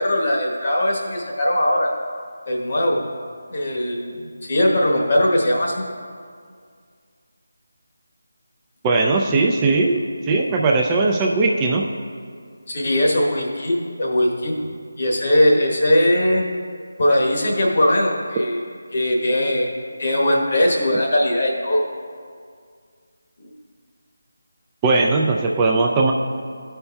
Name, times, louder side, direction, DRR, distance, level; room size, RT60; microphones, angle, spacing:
voice 1, 0.0-1.9 2.5-3.1 3.5-5.8 12.7-14.6 15.0-16.4 17.0-18.6 18.9-19.7 20.0-21.8 23.4-23.5, left 1 dB, 50° left, -2 dB, 1.1 m, -20 dB
voice 2, 8.8-11.8 24.8-26.1, right 3 dB, 15° right, 0 dB, 0.3 m, -19 dB
15.0 x 5.5 x 2.3 m, 2.1 s
figure-of-eight pair, 165°, 0 cm